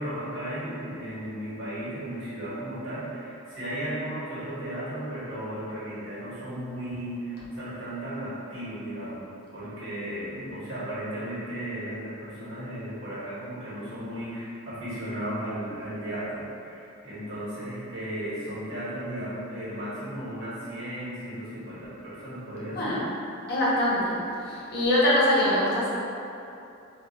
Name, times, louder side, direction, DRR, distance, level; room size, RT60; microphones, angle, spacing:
voice 1, 0.0-23.0, right 1 dB, 65° right, -11 dB, 1.2 m, -35 dB
voice 2, 23.5-24.1 24.7-25.9, left 1 dB, 50° left, -7 dB, 0.7 m, -23 dB
2.4 x 2.2 x 3.9 m, 2.7 s
head